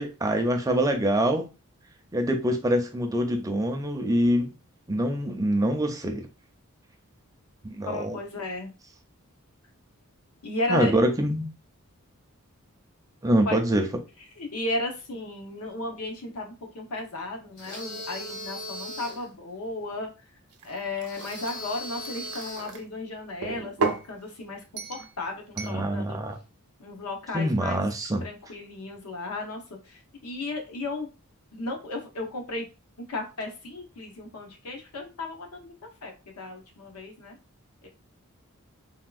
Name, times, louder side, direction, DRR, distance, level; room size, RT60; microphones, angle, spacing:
voice 1, 0.0-1.5 2.1-4.5 4.9-6.2 7.6-8.2 10.7-11.5 13.2-13.9 25.6-26.4 27.3-28.2, right 1 dB, 15° right, 0.4 m, -25 dB
voice 2, 7.9-8.7 10.4-10.9 13.5-13.6 14.4-20.1 20.6-24.6 24.9-26.2 26.8-27.8 28.2-29.6 29.9-31.1 31.5-32.6 33.1-35.7 36.0-37.4 37.8-37.9, left 2 dB, 85° left, 0.8 m, -34 dB
sound 1, 17.6-19.3 21.1-22.8, left 1 dB, 70° left, 1.4 m, -38 dB
sound 2, 20.5-22.8 23.4-24.1 24.8-25.1 25.6-25.8, right 4 dB, 85° right, 0.5 m, -33 dB
3.5 x 2.3 x 2.4 m
head